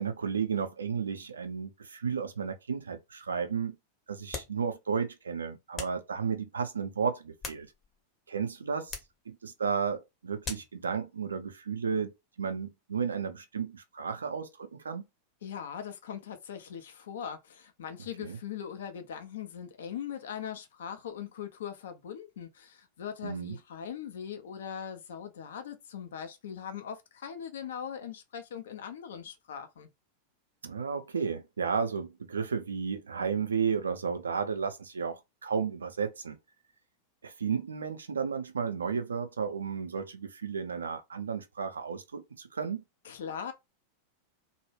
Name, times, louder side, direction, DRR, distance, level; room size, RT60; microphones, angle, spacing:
voice 1, 0.0-3.8 4.1-7.7 8.3-9.0 9.3-15.0 18.2-18.4 23.2-23.6 30.6-36.4 37.2-42.8, right 6 dB, 70° right, 0.4 m, -33 dB
sound 1, 4.3-4.6 5.7-6.1 7.1-8.0 8.9-9.2 10.4-10.8, left 4 dB, 25° left, 0.7 m, -41 dB
voice 2, 15.4-29.9 43.0-43.5, left 8 dB, 60° left, 0.4 m, -40 dB
2.1 x 2.0 x 3.1 m
figure-of-eight pair, 90°, 0 cm